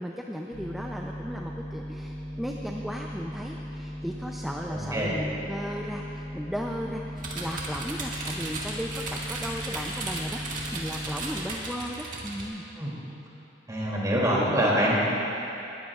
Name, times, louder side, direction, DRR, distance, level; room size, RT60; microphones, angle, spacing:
voice 1, 0.0-10.4 10.7-12.7, equal, ahead, 0 dB, 0.5 m, -36 dB
sound 1, 0.5-11.4, equal, 65° right, 3.4 m, -38 dB
voice 2, 4.7-5.2 12.8-12.9 13.7-15.0, equal, 20° right, -5 dB, 2.8 m, -25 dB
sound 2, 7.2-12.5, right 2 dB, 45° right, 1.9 m, -35 dB
20.0 x 14.0 x 2.5 m, 2.9 s
head